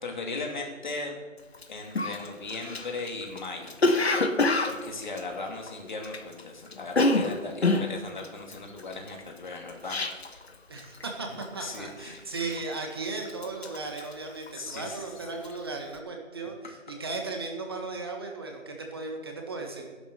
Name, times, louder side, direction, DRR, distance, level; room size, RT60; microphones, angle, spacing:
voice 1, 0.0-1.2 1.7-3.7 4.6-10.4 11.6-12.6 14.5-15.1, left 3 dB, 35° left, 2 dB, 3.0 m, -38 dB
Cough, 1.5-1.6 1.9-6.4 6.7-10.5 10.8-11.1 11.4-11.9 12.4-12.9 13.2-14.9 15.2-15.6, left 2 dB, 50° left, 1.6 m, -27 dB
voice 2, 10.7-11.3 11.5-19.9, right 3 dB, 20° right, 2 dB, 1.5 m, -36 dB
14.5 x 11.5 x 6.6 m, 1.4 s
figure-of-eight pair, 170°, 39 cm